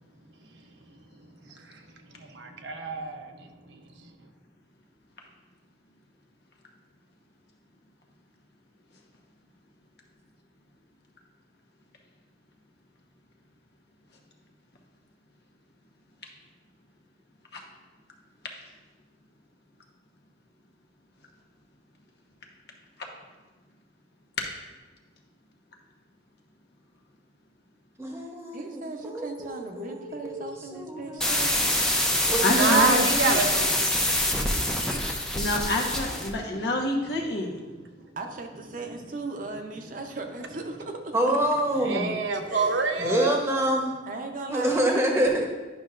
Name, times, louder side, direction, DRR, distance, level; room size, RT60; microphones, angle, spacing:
voice 1, 1.4-1.8 2.1-4.1 32.2-32.3 32.6-34.9 35.3-35.5 36.5-36.6 38.0-38.1 38.9-39.0 41.7-43.4, right 4 dB, 90° right, 4 dB, 0.8 m, -29 dB
voice 2, 28.0-31.4 32.3-33.1 41.1-42.1 43.0-43.9 44.5-45.4, right 1 dB, 15° right, 0 dB, 1.0 m, -27 dB
voice 3, 28.5-31.6 38.2-41.4 42.5-42.9 44.1-45.4, right 3 dB, 50° right, 3 dB, 0.7 m, -37 dB
sound 1, 31.2-36.3, left 1 dB, 5° left, 0.6 m, -25 dB
voice 4, 32.4-33.4 35.3-37.6, left 2 dB, 65° left, 1 dB, 1.1 m, -27 dB
10.5 x 5.6 x 2.5 m, 1.2 s
head